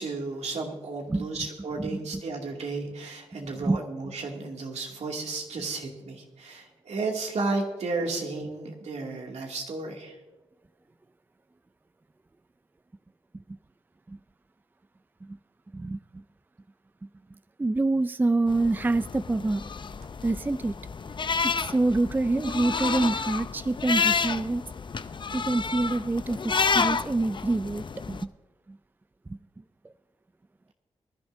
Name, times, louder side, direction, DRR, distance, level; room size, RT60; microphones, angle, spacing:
voice 1, 0.0-10.2, right 3 dB, 75° right, 0 dB, 2.5 m, -33 dB
voice 2, 15.7-16.2 17.6-19.6 20.2-20.7 21.4-24.7 25.3-28.2 28.7-28.8 29.3-29.4, right 2 dB, 15° right, 14 dB, 0.4 m, -26 dB
sound 1, 18.5-28.2, left 5 dB, 45° left, 0.6 m, -30 dB
24.0 x 11.5 x 2.7 m, 1.2 s
cardioid pair, 55°, 11 cm